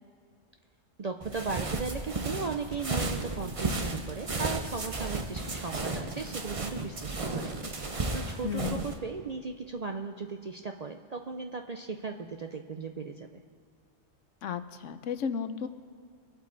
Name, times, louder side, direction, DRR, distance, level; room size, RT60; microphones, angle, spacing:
voice 1, 1.0-7.5 8.1-13.4, right 4 dB, 50° right, 4 dB, 0.5 m, -37 dB
sound 1, 1.2-9.0, right 3 dB, 30° right, 0.8 m, -34 dB
voice 2, 8.4-8.8 14.4-15.7, left 7 dB, 80° left, 11 dB, 1.0 m, -33 dB
23.5 x 8.3 x 3.9 m, 2.3 s
omnidirectional pair, 1.3 m